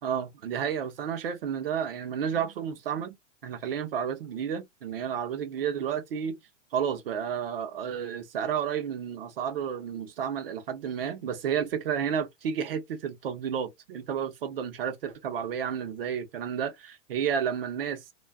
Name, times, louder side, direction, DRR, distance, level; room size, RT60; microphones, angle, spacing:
voice 1, 0.0-3.2 3.4-6.4 6.7-18.0, right 8 dB, 50° right, 0.7 m, -31 dB
2.2 x 2.2 x 3.3 m
supercardioid pair, 175°, 38 cm